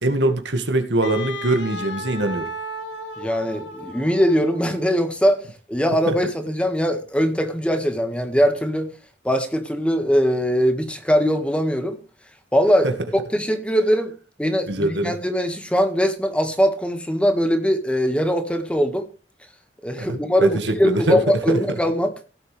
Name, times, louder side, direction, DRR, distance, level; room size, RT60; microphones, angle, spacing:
voice 1, 0.0-2.5 6.1-6.2 12.8-12.9 14.7-15.1 20.0-21.6, right 1 dB, 80° right, 8 dB, 2.0 m, -22 dB
Wind instrument woodwind instrument, 1.0-5.1, equal, 85° left, 3.0 m, -35 dB
voice 2, 3.2-5.4 5.7-8.9 9.2-12.0 12.5-12.9 13.3-14.1 14.4-19.1 19.8-22.1, equal, 5° left, 7 dB, 1.8 m, -21 dB
17.0 x 7.9 x 3.4 m, 0.36 s
head